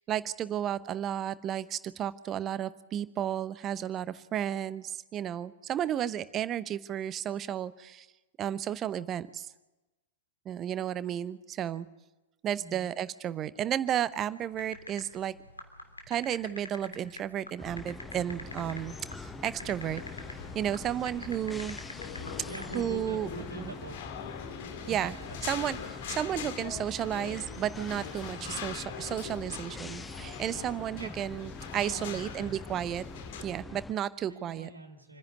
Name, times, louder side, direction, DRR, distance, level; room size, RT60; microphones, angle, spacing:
voice 1, 0.0-8.1 8.4-9.5 10.5-11.9 12.4-15.3 16.1-18.9 19.2-20.0 20.3-21.8 22.7-23.3 23.5-23.7 24.9-25.2 25.5-33.0 33.4-34.7, right 10 dB, 25° right, 16 dB, 0.8 m, -33 dB
voice 2, 12.5-12.9 21.1-21.4 22.5-24.2 24.8-25.6 31.0-31.2 31.7-32.5 34.3-35.2, right 2 dB, 80° right, 4 dB, 2.4 m, -44 dB
sound 1, 14.5-22.8, left 2 dB, 80° left, 3.0 m, -44 dB
sound 2, 17.6-33.9, left 3 dB, 10° left, 0.7 m, -44 dB
sound 3, 18.4-33.4, left 8 dB, 50° left, 1.9 m, -43 dB
27.5 x 10.5 x 9.4 m, 1.1 s
figure-of-eight pair, 105°, 0 cm